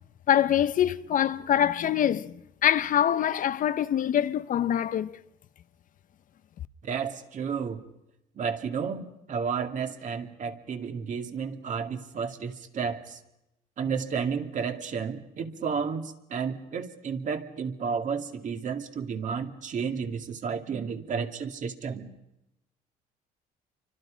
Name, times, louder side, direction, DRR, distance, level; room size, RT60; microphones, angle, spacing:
voice 1, 0.3-5.2, left 10 dB, 55° left, 0.8 m, -24 dB
voice 2, 6.8-7.8 8.4-13.2 13.8-22.1, right 6 dB, 50° right, 2.3 m, -32 dB
29.0 x 25.0 x 5.2 m
cardioid pair, 110°, 17 cm